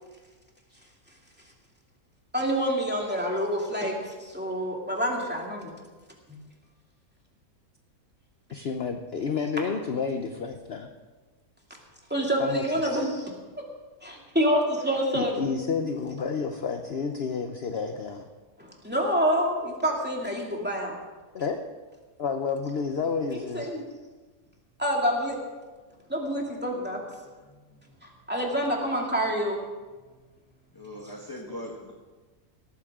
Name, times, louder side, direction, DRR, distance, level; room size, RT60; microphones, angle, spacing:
voice 1, 2.3-5.7 6.3-6.4 12.1-13.3 14.0-15.4 15.7-15.8 18.6-21.0 23.3-23.8 24.8-25.4 26.1-27.0 28.3-29.6, equal, 5° right, -2 dB, 2.5 m, -27 dB
voice 2, 8.5-10.9 12.4-13.0 15.1-18.3 21.3-21.6 22.2-23.7, left 5 dB, 50° left, 5 dB, 0.9 m, -30 dB
voice 3, 30.7-31.9, left 1 dB, 15° left, -1 dB, 1.3 m, -39 dB
18.5 x 14.0 x 3.7 m, 1.3 s
omnidirectional pair, 1.6 m